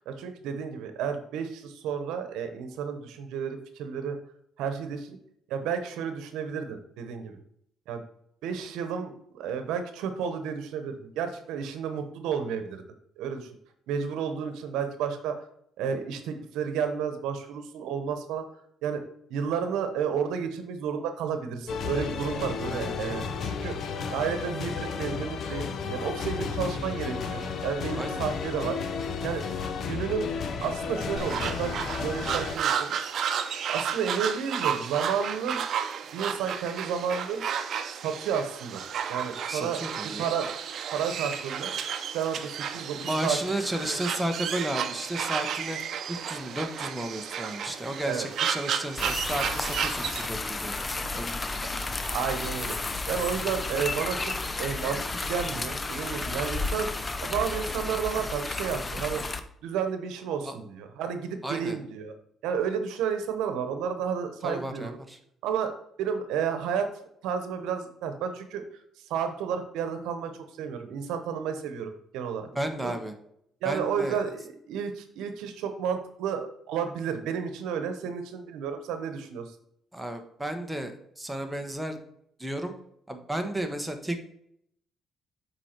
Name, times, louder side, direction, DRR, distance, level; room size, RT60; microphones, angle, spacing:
voice 1, 0.0-4.2 4.6-5.2 5.5-7.4 7.9-8.0 8.4-12.8 13.2-13.5 13.9-15.4 15.8-18.4 18.8-19.0 19.3-23.7 24.1-28.8 29.2-29.4 29.9-32.9 33.6-35.6 36.1-37.4 37.9-38.8 39.1-40.5 40.9-41.7 42.1-43.4 48.0-48.3 52.1-52.8 53.1-56.9 57.2-59.2 59.6-62.1 62.4-64.9 65.4-65.7 66.0-66.9 67.2-68.6 69.1-72.5 72.8-73.0 73.6-79.5, right 7 dB, 90° right, 8 dB, 1.0 m, -31 dB
sound 1, 21.7-32.6, left 5 dB, 60° left, 0.8 m, -33 dB
sound 2, 31.2-50.3, right 8 dB, 65° right, 0.7 m, -32 dB
voice 2, 39.5-40.3 42.9-45.8 46.1-51.6 60.4-60.6 61.4-61.8 64.4-65.2 72.5-73.1 73.6-74.2 79.9-82.0 82.4-82.7 83.1-84.2, right 1 dB, 5° right, 4 dB, 1.2 m, -33 dB
sound 3, 49.0-59.4, left 3 dB, 25° left, 0.7 m, -32 dB
7.7 x 4.7 x 4.4 m, 0.73 s
cardioid pair, 90°, 0 cm